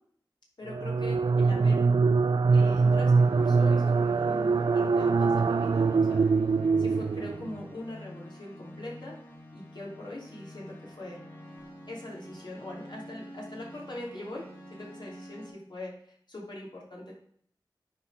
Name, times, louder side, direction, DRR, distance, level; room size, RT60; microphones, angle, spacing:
voice 1, 0.6-1.8 2.5-6.2 6.8-9.1 9.5-11.2 11.9-17.1, left 1 dB, 65° left, -2 dB, 3.1 m, -42 dB
sound 1, 0.7-7.6, right 4 dB, 65° right, 0.3 m, -23 dB
sound 2, 2.5-15.5, left 1 dB, 25° left, 3.6 m, -47 dB
9.7 x 4.4 x 4.9 m, 0.62 s
wide cardioid pair, 75°, 8 cm